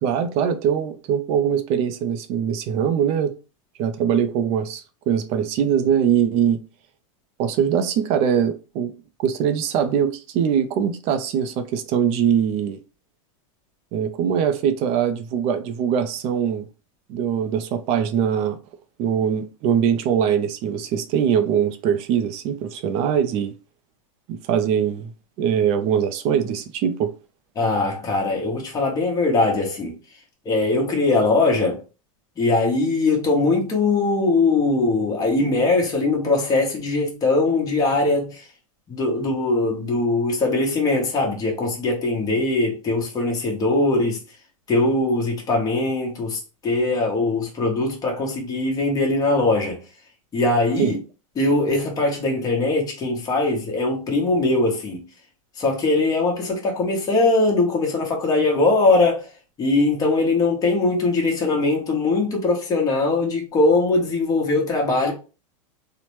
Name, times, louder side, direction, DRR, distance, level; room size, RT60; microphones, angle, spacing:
voice 1, 0.0-3.3 3.8-6.6 7.4-8.9 9.2-12.8 13.9-16.7 17.1-18.6 19.0-23.5 24.3-25.1 25.4-27.1 50.8-50.9, right 8 dB, 35° right, 0.4 m, -22 dB
voice 2, 27.6-29.9 30.4-31.8 32.4-38.5 38.9-44.2 44.7-49.8 50.3-51.0 51.4-55.0 55.6-59.3 59.6-65.1, left 2 dB, 20° left, 1.0 m, -21 dB
2.9 x 2.1 x 3.0 m
supercardioid pair, 140°, 17 cm